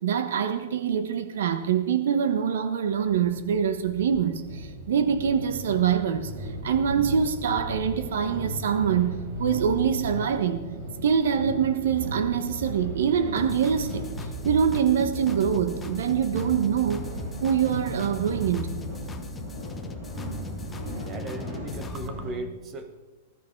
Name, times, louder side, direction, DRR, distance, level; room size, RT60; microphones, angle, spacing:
voice 1, 0.0-10.6 11.0-14.1 14.4-17.0 17.4-18.8, right 8 dB, 75° right, 1.2 m, -25 dB
sound 1, 3.0-22.4, right 1 dB, 35° right, 5.6 m, -36 dB
sound 2, 13.4-22.1, left 4 dB, 10° left, 0.8 m, -39 dB
voice 2, 21.1-23.0, right 3 dB, 20° right, 1.2 m, -38 dB
20.5 x 12.5 x 4.7 m
supercardioid pair, 180°, 0 cm